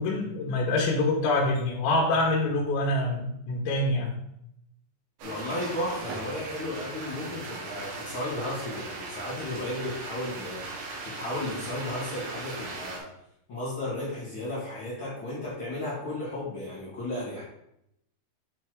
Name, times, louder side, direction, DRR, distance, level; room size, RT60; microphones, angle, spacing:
voice 1, 0.0-4.1, left 2 dB, 80° left, -3 dB, 3.4 m, -25 dB
voice 2, 5.2-13.1 13.5-17.4, left 1 dB, 45° left, -7 dB, 1.8 m, -34 dB
sound 1, 5.2-13.0, right 3 dB, 75° right, 1.8 m, -38 dB
8.5 x 3.5 x 4.6 m, 0.78 s
omnidirectional pair, 5.3 m